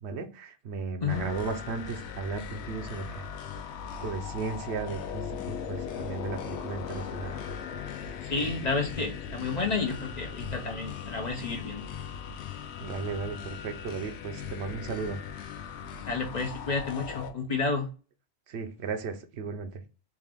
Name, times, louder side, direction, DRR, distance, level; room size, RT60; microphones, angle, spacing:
voice 1, 0.0-3.3 4.0-7.4 12.8-15.2 18.5-19.7, right 5 dB, 75° right, 7 dB, 0.9 m, -35 dB
sound 1, 1.1-17.3, left 7 dB, 80° left, 0.8 m, -39 dB
voice 2, 8.2-11.8 16.1-17.9, left 4 dB, 45° left, 2 dB, 0.6 m, -31 dB
3.5 x 2.5 x 3.3 m, 0.35 s
omnidirectional pair, 1.2 m